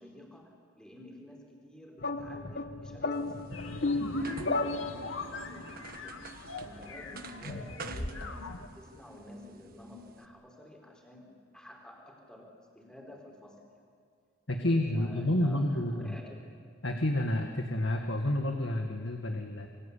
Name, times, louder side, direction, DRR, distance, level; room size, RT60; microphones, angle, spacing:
voice 1, 0.0-3.5 4.0-6.3 6.6-13.6 14.6-16.4, left 1 dB, 5° left, 0 dB, 5.0 m, -51 dB
sound 1, 2.0-5.5, left 3 dB, 50° left, 1.2 m, -33 dB
sound 2, 3.1-10.3, right 4 dB, 50° right, 1.6 m, -49 dB
sound 3, 3.5-8.7, left 1 dB, 85° left, 2.1 m, -40 dB
voice 2, 14.5-16.2 16.8-19.7, left 1 dB, 70° left, 4 dB, 1.9 m, -29 dB
28.0 x 23.0 x 8.6 m, 2.1 s
head